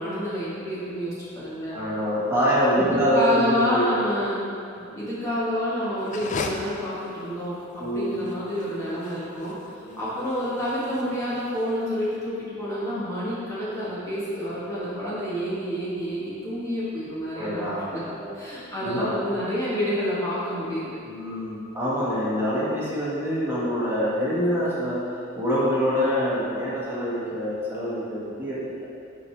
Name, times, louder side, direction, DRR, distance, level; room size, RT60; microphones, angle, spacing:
voice 1, 0.0-1.8 2.8-4.4 4.9-9.5 10.0-17.7 17.9-18.0 18.3-20.9, equal, 15° left, -10 dB, 1.3 m, -28 dB
voice 2, 1.7-3.9 4.8-4.9 7.8-8.2 9.8-10.1 17.3-18.3 18.8-19.3 21.0-25.0 25.3-28.9, equal, 10° right, -9 dB, 1.5 m, -25 dB
sound 1, 6.0-12.1, left 4 dB, 35° left, 0.4 m, -38 dB
8.7 x 4.8 x 3.2 m, 2.4 s
head